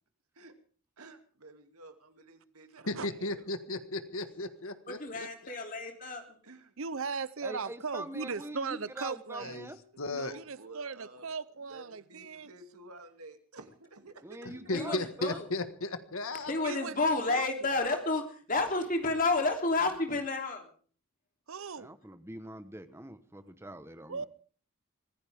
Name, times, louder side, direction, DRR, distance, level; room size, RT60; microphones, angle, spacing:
voice 1, 1.0-3.3 6.4-6.7 9.9-11.3 11.7-14.4 17.2-17.3, right 2 dB, 90° right, 2.6 m, -51 dB
voice 2, 2.9-5.5 9.4-9.7 10.0-10.3 14.4-16.5, left 2 dB, 70° left, 1.7 m, -35 dB
voice 3, 4.9-6.4 14.7-15.5 16.5-20.7, left 3 dB, 35° left, 3.2 m, -30 dB
voice 4, 6.8-9.6 10.3-12.5 16.6-16.9 17.3-17.5 21.5-21.9 24.1-24.3, right 5 dB, 70° right, 0.8 m, -38 dB
voice 5, 7.4-9.8 14.2-15.4 21.8-24.3, right 1 dB, 10° right, 1.1 m, -43 dB
24.5 x 16.0 x 3.6 m
head